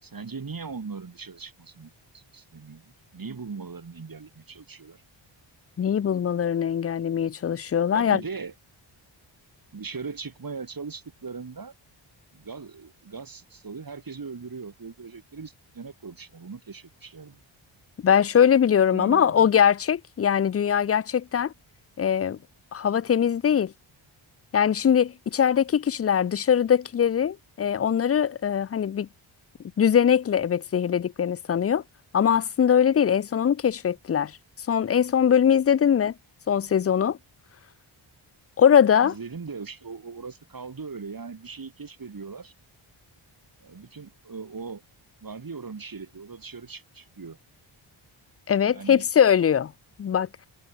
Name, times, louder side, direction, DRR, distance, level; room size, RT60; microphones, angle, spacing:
voice 1, 0.0-5.0 7.9-8.5 9.7-11.7 12.3-17.4 18.9-19.5 39.0-42.5 43.6-44.8 45.2-47.4 48.7-49.0 50.2-50.3, right 5 dB, 45° right, 2.9 m, -39 dB
voice 2, 5.8-8.2 18.0-21.5 22.0-22.4 22.7-23.7 24.5-29.1 29.8-31.8 32.1-34.3 34.7-36.1 36.5-37.2 38.6-39.1 48.5-49.7 50.0-50.3, left 8 dB, 30° left, 0.4 m, -21 dB
cardioid pair, 75°, 50 cm